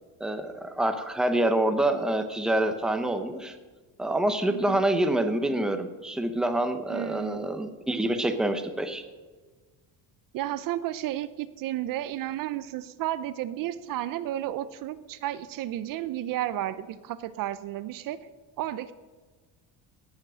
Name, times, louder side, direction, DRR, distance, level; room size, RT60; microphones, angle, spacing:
voice 1, 0.2-3.6 4.0-9.0, right 1 dB, ahead, 7 dB, 0.8 m, -26 dB
voice 2, 4.5-4.8 6.9-7.5 10.3-18.2 18.6-18.9, right 13 dB, 55° right, 14 dB, 0.6 m, -32 dB
17.5 x 7.4 x 6.2 m, 1.3 s
cardioid pair, 155°, 39 cm